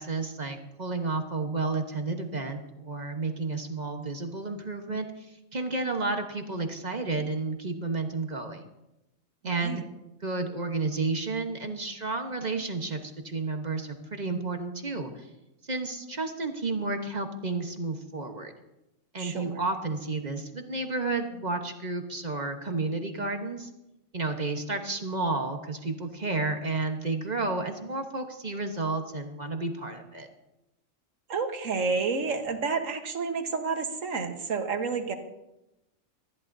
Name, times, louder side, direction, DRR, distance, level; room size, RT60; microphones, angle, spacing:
voice 1, 0.0-5.3 5.5-8.7 9.4-9.8 10.2-15.2 15.7-18.5 19.1-23.7 24.1-30.3, right 3 dB, 35° right, 4 dB, 1.2 m, -31 dB
voice 2, 9.4-9.8 19.2-19.6 31.3-35.1, right 4 dB, 75° right, 6 dB, 1.7 m, -30 dB
20.0 x 14.5 x 2.7 m, 0.92 s
omnidirectional pair, 1.4 m